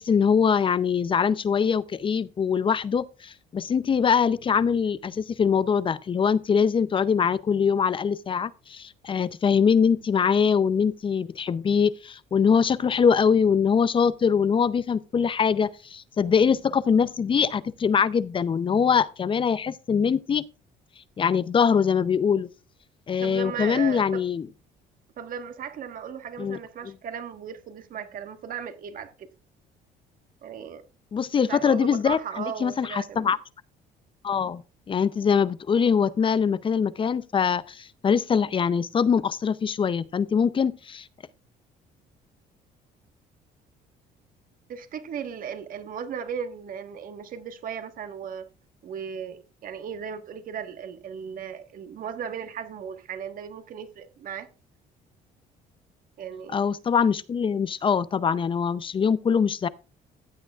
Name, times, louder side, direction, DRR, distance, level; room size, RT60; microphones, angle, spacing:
voice 1, 0.0-20.5 21.2-22.5 23.1-24.5 26.4-26.6 31.1-32.2 32.6-33.4 34.2-41.1 56.5-59.7, left 6 dB, 30° left, 0.5 m, -23 dB
voice 2, 23.2-24.2 25.2-29.3 30.4-30.8 31.5-33.3 44.7-48.5 48.8-54.5 56.2-56.6, right 7 dB, 55° right, 1.4 m, -36 dB
15.5 x 8.8 x 2.4 m
cardioid pair, 110°, 17 cm